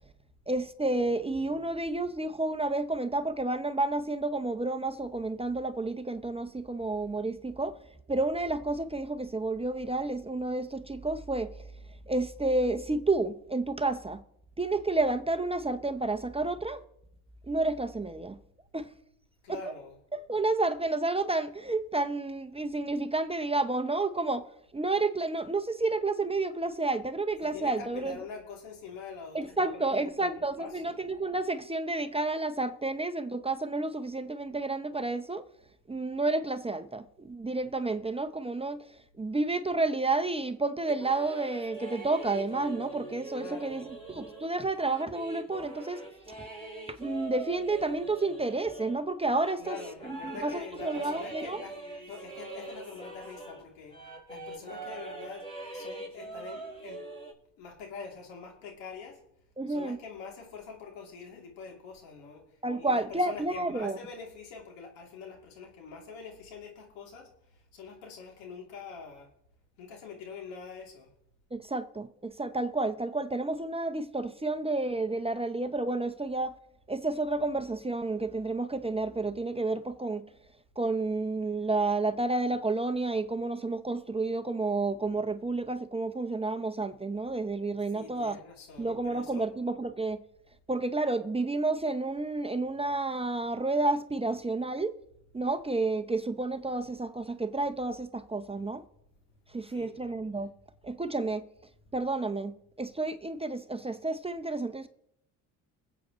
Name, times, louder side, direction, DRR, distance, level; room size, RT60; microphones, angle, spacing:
voice 1, 0.5-7.7 8.1-11.5 12.1-14.2 14.6-16.8 17.5-18.4 18.7-18.9 20.3-24.4 24.7-28.1 29.3-35.4 35.9-38.8 39.2-43.8 44.2-46.0 47.0-49.8 50.4-51.6 59.6-60.0 62.6-64.0 71.5-76.5 76.9-80.2 80.8-88.4 88.8-90.2 90.7-94.9 95.3-98.8 99.5-100.5 100.8-101.4 101.9-102.5 102.8-104.9, right 2 dB, 15° right, 0.7 m, -30 dB
voice 2, 19.4-20.0 27.4-31.0 43.4-43.9 49.6-51.8 52.1-57.0 57.6-59.2 59.7-69.3 69.8-71.1 87.9-89.5 95.3-95.5 99.6-100.0, left 5 dB, 85° left, 3.0 m, -45 dB
sound 1, 40.9-53.6 53.9-57.3, right 2 dB, 10° left, 4.5 m, -43 dB
22.0 x 8.1 x 3.1 m
supercardioid pair, 80°, 43 cm